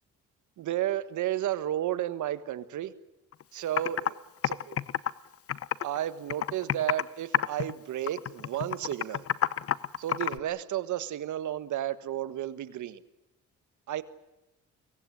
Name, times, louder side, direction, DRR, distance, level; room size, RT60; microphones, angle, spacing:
voice 1, 0.6-2.9 3.5-4.2 4.4-4.8 5.8-9.2 10.0-13.0 13.9-14.0, right 12 dB, 75° right, 13 dB, 1.5 m, -32 dB
Computer keyboard, 3.3-3.4 3.8-4.1 4.4-6.0 6.3-7.1 7.3-7.7 8.1-10.4, left 10 dB, 50° left, 0.8 m, -29 dB
24.0 x 18.0 x 9.8 m, 0.95 s
cardioid pair, 90°, 30 cm